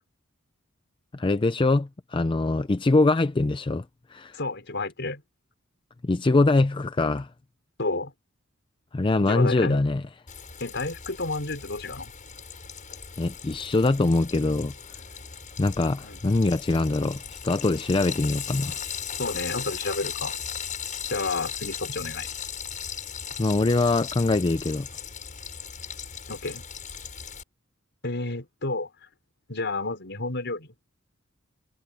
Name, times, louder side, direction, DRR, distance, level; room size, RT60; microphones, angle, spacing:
voice 1, 1.1-3.8 4.1-4.4 6.0-7.3 8.9-10.0 13.2-14.7 15.6-18.8 23.4-24.9, left 2 dB, 25° left, 0.5 m, -23 dB
voice 2, 4.3-5.2 7.8-8.1 9.3-9.8 10.6-12.1 16.0-16.2 19.2-20.4 21.1-22.3 26.3-26.6 28.0-28.9 29.5-30.7, left 3 dB, 60° left, 4.9 m, -30 dB
Frying (food), 10.3-27.4, left 7 dB, 40° left, 6.7 m, -37 dB
head